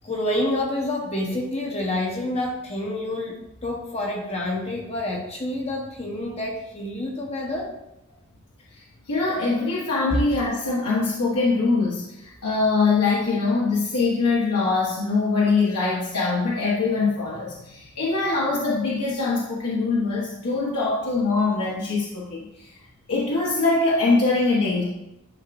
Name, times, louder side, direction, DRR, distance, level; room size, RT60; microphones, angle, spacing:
voice 1, 0.0-7.7 10.1-10.2, left 1 dB, 30° left, -1 dB, 1.0 m, -28 dB
voice 2, 9.1-22.7 23.1-24.8, left 3 dB, 85° left, -5 dB, 1.3 m, -23 dB
10.5 x 4.6 x 2.6 m, 0.87 s
head